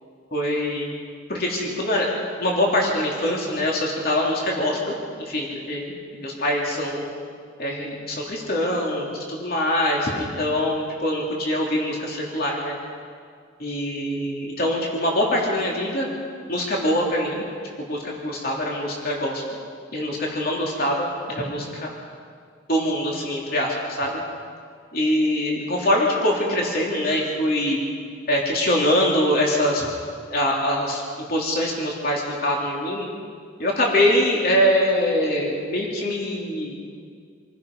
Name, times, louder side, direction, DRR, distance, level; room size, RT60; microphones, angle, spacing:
voice 1, 0.3-0.9 1.3-2.1 2.4-7.1 7.6-12.7 13.6-16.1 16.5-17.4 17.9-19.6 19.9-21.9 22.7-24.2 24.9-27.8 28.3-29.9 30.3-31.0 31.3-33.1 33.6-36.7, left 1 dB, 45° left, -2 dB, 3.2 m, -23 dB
27.0 x 19.0 x 5.5 m, 2.1 s
head